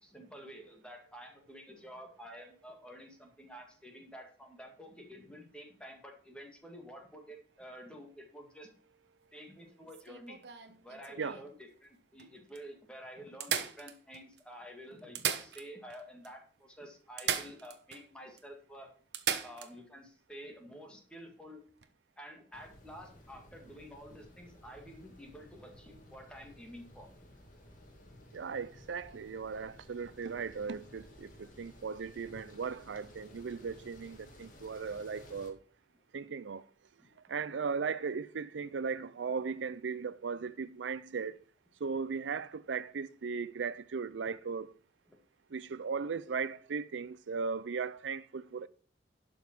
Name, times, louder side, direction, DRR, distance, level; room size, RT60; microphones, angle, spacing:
voice 1, 0.0-8.7 9.3-10.4 10.8-18.9 19.4-21.6 22.2-27.1 37.3-37.4 45.1-45.2, equal, 5° left, 2.1 m, -50 dB
sound 1, 9.9-11.5 12.2-12.3 12.5-12.6 13.4-14.4 15.0-16.0 16.2-16.3 17.2-18.0 18.4-18.5 19.1-19.7 21.7-21.8, right 8 dB, 65° right, 1.0 m, -36 dB
sound 2, 22.5-35.5, left 1 dB, 45° left, 2.2 m, -56 dB
voice 2, 28.3-35.6 36.1-36.7 37.3-41.4 41.8-44.7 45.5-48.7, right 5 dB, 85° right, 0.5 m, -37 dB
11.5 x 5.3 x 6.0 m
head